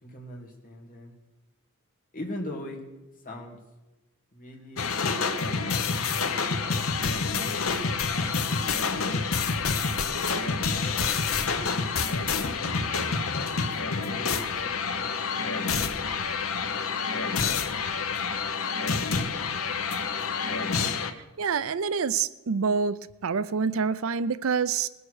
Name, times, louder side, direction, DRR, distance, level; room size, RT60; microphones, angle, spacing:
voice 1, 0.0-1.1 2.1-2.8 3.2-3.6 4.3-5.0 5.6-7.2 8.2-9.8 10.8-11.9 14.0-18.8, left 1 dB, 40° left, 0 dB, 2.4 m, -43 dB
sound 1, 4.8-21.1, left 5 dB, 65° left, 0.9 m, -28 dB
voice 2, 21.4-23.0 23.2-24.9, right 5 dB, 65° right, 16 dB, 0.5 m, -26 dB
20.0 x 7.1 x 6.4 m, 1.1 s
head